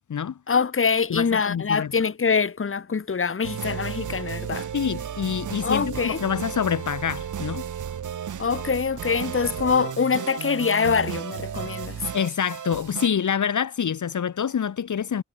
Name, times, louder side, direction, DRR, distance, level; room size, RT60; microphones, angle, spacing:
voice 1, 0.5-4.7 5.6-6.2 8.4-12.1, left 5 dB, 45° left, 0.9 m, -24 dB
voice 2, 1.1-1.9 4.7-7.6 12.1-15.2, left 8 dB, 80° left, 0.7 m, -26 dB
sound 1, 3.4-13.1, right 8 dB, 90° right, 0.6 m, -33 dB
wide cardioid pair, 65°, 30 cm